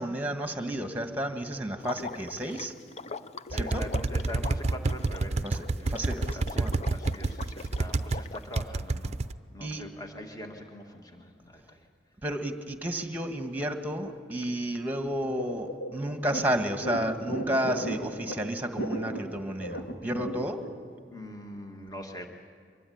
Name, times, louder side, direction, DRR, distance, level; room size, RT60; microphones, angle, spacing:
voice 1, 0.0-2.7 3.5-3.8 5.4-6.7 9.6-9.8 12.2-20.6, right 1 dB, 10° right, 6 dB, 1.7 m, -32 dB
Water / Liquid, 1.8-8.6, left 4 dB, 35° left, 0.6 m, -42 dB
voice 2, 3.5-5.9 6.2-9.2 9.5-11.9 21.1-22.3, left 1 dB, 20° left, 3 dB, 2.1 m, -43 dB
sound 1, 3.5-8.2 8.6-9.3, right 2 dB, 40° right, 0.6 m, -28 dB
sound 2, 15.4-20.7, right 1 dB, 80° left, 3.3 m, -35 dB
24.0 x 22.0 x 9.5 m, 2.1 s
head